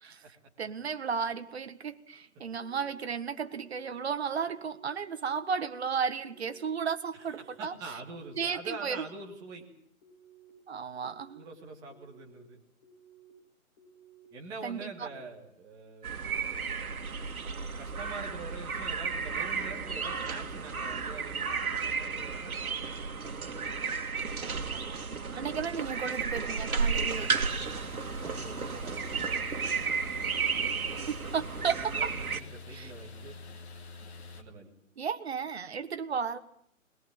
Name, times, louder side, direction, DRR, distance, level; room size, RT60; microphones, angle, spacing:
voice 1, 0.6-7.7 8.4-9.0 10.7-11.4 14.6-15.1 24.4-25.1 25.3-27.3 31.1-31.9 32.7-32.9 35.0-36.4, right 6 dB, 50° right, 10 dB, 1.7 m, -34 dB
sound 1, 2.5-3.0 3.4-3.9 4.4-4.9 5.3-5.8 6.3-6.8 7.2-7.7 8.1-8.6 9.1-9.6 10.0-10.5 10.9-11.4 11.9-12.4 12.8-13.3 13.8-14.3 14.7-15.2, right 6 dB, 30° left, 5.4 m, -58 dB
voice 2, 7.1-9.7 11.3-12.6 14.3-16.2 17.8-23.7 27.1-27.4 28.2-29.5 31.6-33.4 34.4-34.7, right 3 dB, 10° right, 0 dB, 1.9 m, -45 dB
sound 2, 16.0-32.4, right 5 dB, 85° right, 2.4 m, -33 dB
sound 3, 26.8-34.4, left 3 dB, 50° left, 3.2 m, -46 dB
21.5 x 21.0 x 8.7 m, 0.69 s
hypercardioid pair, 170°, 42 cm